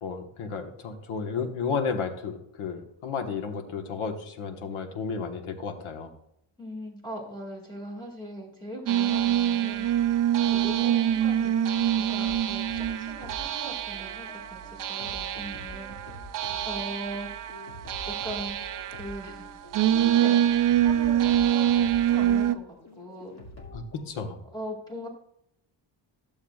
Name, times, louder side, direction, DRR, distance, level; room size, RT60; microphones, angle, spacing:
voice 1, 0.0-6.1 23.7-24.4, left 5 dB, 75° left, 5 dB, 1.4 m, -32 dB
voice 2, 6.6-10.0 10.5-11.6 12.0-16.0 16.7-17.3 18.1-18.6 18.9-19.5 19.9-20.4 20.8-23.3 24.4-25.1, right 1 dB, 10° left, -1 dB, 2.0 m, -40 dB
sound 1, 8.9-22.5, right 11 dB, 45° right, 0.5 m, -25 dB
sound 2, 12.2-24.0, left 1 dB, 30° left, 2.2 m, -47 dB
13.5 x 7.1 x 2.4 m, 0.75 s
cardioid pair, 135°, 50 cm